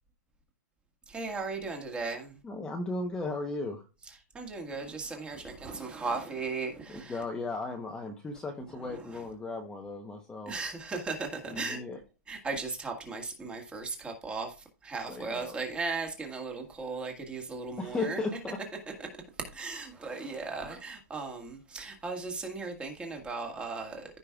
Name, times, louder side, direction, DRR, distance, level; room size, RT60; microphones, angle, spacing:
voice 1, 1.1-2.4 4.0-7.2 8.7-9.3 10.5-11.8 12.3-14.6 14.8-18.2 19.0-19.1 19.4-24.2, right 4 dB, 10° right, 1.7 m, -37 dB
voice 2, 2.4-3.9 7.1-10.5 11.5-12.0 15.1-15.5 17.8-18.6, left 3 dB, 10° left, 0.9 m, -36 dB
15.0 x 5.3 x 2.4 m
hypercardioid pair, 160°, 10 cm